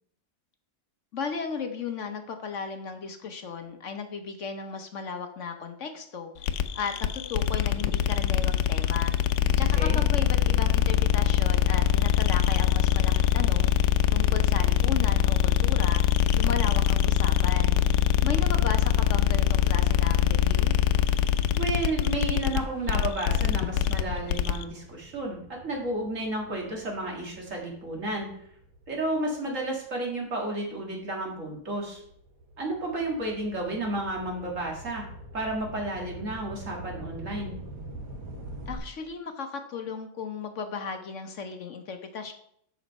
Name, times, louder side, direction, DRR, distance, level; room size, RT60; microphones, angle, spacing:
voice 1, 1.1-6.3 6.7-9.1 9.6-13.7 14.1-16.0 16.4-17.8 18.2-20.8 38.7-42.3, left 5 dB, 55° left, 6 dB, 1.0 m, -35 dB
sound 1, 6.4-24.6, left 10 dB, 80° left, 1.1 m, -23 dB
voice 2, 21.5-28.3 28.9-32.0 32.6-35.0 35.3-37.6, right 2 dB, 50° right, -1 dB, 2.4 m, -32 dB
sound 2, 23.9-30.2 30.8-38.8, right 1 dB, 85° right, 2.1 m, -45 dB
7.1 x 6.2 x 5.3 m, 0.69 s
omnidirectional pair, 1.7 m